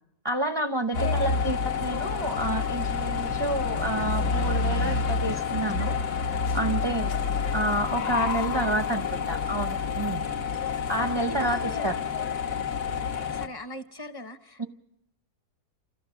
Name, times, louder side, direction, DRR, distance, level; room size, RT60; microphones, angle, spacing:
voice 1, 0.2-6.0 6.5-7.1 7.5-10.3 10.9-12.0 14.6-14.7, right 2 dB, 35° right, 0.4 m, -29 dB
sound 1, 0.9-13.5, left 5 dB, 90° left, 1.6 m, -28 dB
voice 2, 1.0-1.4 6.8-7.1 11.3-11.9 12.9-14.6, left 3 dB, 25° left, 0.5 m, -39 dB
29.0 x 14.0 x 6.9 m
omnidirectional pair, 1.6 m